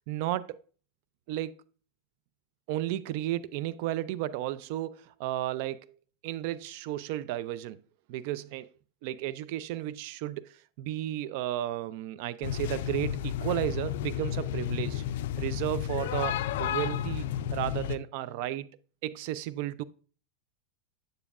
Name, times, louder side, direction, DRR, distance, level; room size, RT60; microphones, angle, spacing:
voice 1, 0.1-0.6 1.3-1.6 2.7-7.8 8.1-8.7 9.0-15.0 15.4-18.7 19.0-19.8, right 14 dB, 55° right, 0.3 m, -33 dB
sound 1, 12.4-18.0, left 11 dB, 75° left, 0.3 m, -32 dB
7.7 x 7.1 x 2.4 m
supercardioid pair, 150°, 0 cm